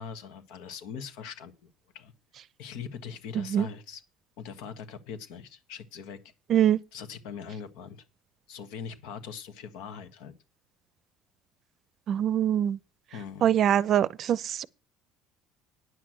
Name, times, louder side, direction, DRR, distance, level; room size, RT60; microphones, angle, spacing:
voice 1, 0.0-2.1 2.6-4.0 4.4-6.2 6.9-8.0 8.5-10.3 13.1-13.5, left 6 dB, 80° left, 1.4 m, -41 dB
voice 2, 3.4-3.7 6.5-6.8 12.1-12.8 13.4-14.6, right 10 dB, 50° right, 0.5 m, -23 dB
9.7 x 6.1 x 7.6 m
cardioid pair, 115°, 0 cm